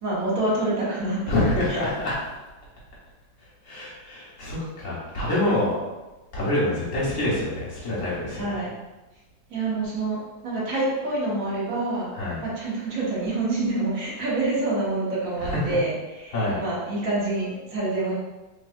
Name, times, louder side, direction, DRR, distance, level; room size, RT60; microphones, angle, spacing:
voice 1, 0.0-1.2 1.7-1.8 8.3-8.7 9.5-10.2 10.4-12.1 12.4-18.1, right 2 dB, 55° right, -6 dB, 1.3 m, -27 dB
voice 2, 1.3-2.2 3.6-5.7 6.3-8.6 12.1-12.4 15.4-15.7 16.3-16.6, left 1 dB, 50° left, -7 dB, 1.3 m, -26 dB
3.4 x 3.0 x 2.4 m, 1.1 s
omnidirectional pair, 1.9 m